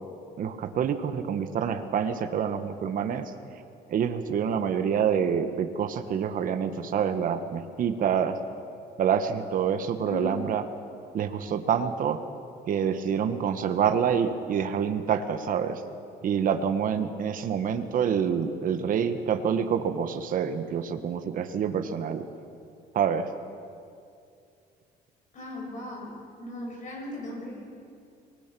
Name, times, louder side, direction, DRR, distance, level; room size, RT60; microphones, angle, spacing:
voice 1, 0.4-3.3 3.9-8.4 9.0-10.6 11.1-12.2 12.7-15.8 16.2-22.2 22.9-23.3, right 7 dB, 55° right, 8 dB, 1.3 m, -27 dB
voice 2, 10.0-10.4 25.3-27.8, left 2 dB, 45° left, -2 dB, 7.5 m, -38 dB
24.0 x 19.5 x 6.1 m, 2.4 s
cardioid pair, 110°, 17 cm